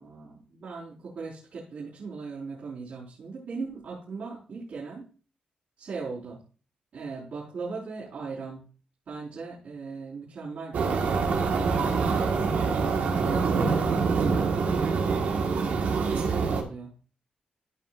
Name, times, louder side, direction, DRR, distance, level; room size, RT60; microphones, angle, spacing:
voice 1, 0.0-5.0 5.8-6.4 6.9-8.7 9.1-11.2 12.9-16.9, right 4 dB, 65° right, -8 dB, 4.6 m, -38 dB
sound 1, 10.7-16.6, right 4 dB, 90° right, 1.6 m, -25 dB
15.5 x 5.9 x 2.5 m, 0.37 s
wide cardioid pair, 120°, 3 cm